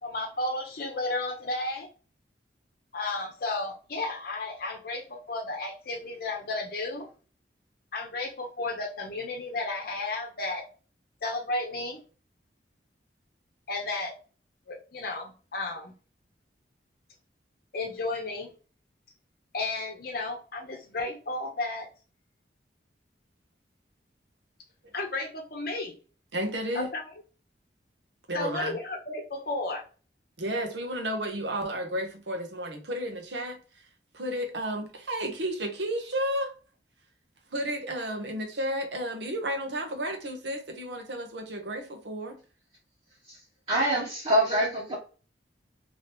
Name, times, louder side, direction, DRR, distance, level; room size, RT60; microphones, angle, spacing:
voice 1, 0.0-1.9 2.9-7.1 7.9-10.6 11.2-12.0 13.7-14.1 14.7-15.9 17.7-18.5 19.5-21.9 24.9-26.0 26.7-27.0 28.3-29.8, left 2 dB, 55° left, 0.7 m, -33 dB
voice 2, 26.3-26.9 28.3-28.8 30.4-33.6 34.1-36.5 37.5-42.4, equal, 80° right, 0.9 m, -32 dB
voice 3, 43.7-44.9, right 1 dB, 35° right, 1.0 m, -25 dB
2.9 x 2.8 x 3.3 m
head